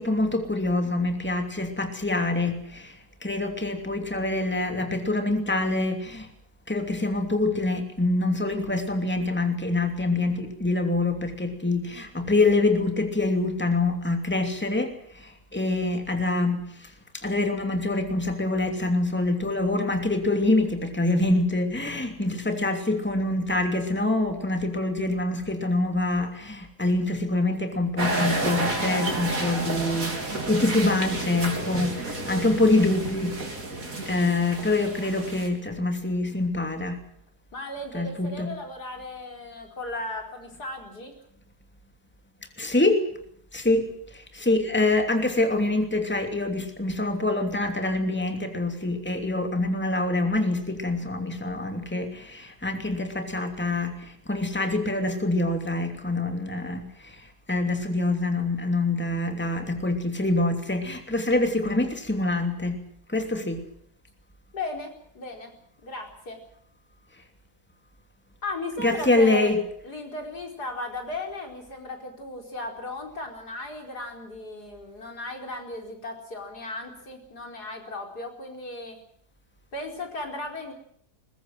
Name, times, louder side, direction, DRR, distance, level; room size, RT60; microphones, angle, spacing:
voice 1, 0.0-6.3 6.7-33.4 34.1-37.0 37.9-38.5 42.6-43.0 43.5-62.8 63.1-63.6 68.8-69.6, left 2 dB, 5° left, 5 dB, 2.8 m, -25 dB
sound 1, 28.0-35.5, right 2 dB, 60° right, 4.1 m, -30 dB
voice 2, 37.5-41.1 64.5-65.5 65.8-66.4 68.4-69.5 69.8-79.0 79.7-80.7, left 2 dB, 80° left, 3 dB, 5.1 m, -36 dB
21.5 x 21.0 x 7.7 m, 0.66 s
omnidirectional pair, 1.7 m